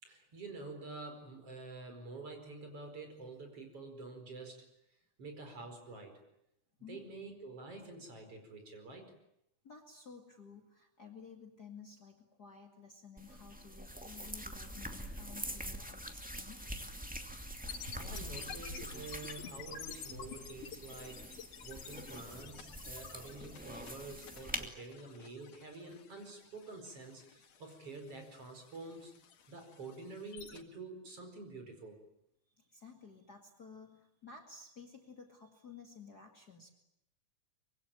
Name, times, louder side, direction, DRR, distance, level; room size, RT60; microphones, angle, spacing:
voice 1, 0.0-4.7 5.2-6.2 6.9-9.2 17.7-21.3 21.6-29.1 29.5-32.0, right 3 dB, 45° right, 5 dB, 5.7 m, -48 dB
voice 2, 6.8-7.2 9.6-16.9 32.5-36.7, left 5 dB, 35° left, 3 dB, 2.4 m, -54 dB
sound 1, 13.2-24.7, equal, 5° right, 1.9 m, -45 dB
sound 2, 17.7-30.6, left 7 dB, 80° left, 3.5 m, -50 dB
25.0 x 23.5 x 9.0 m, 0.79 s
omnidirectional pair, 3.5 m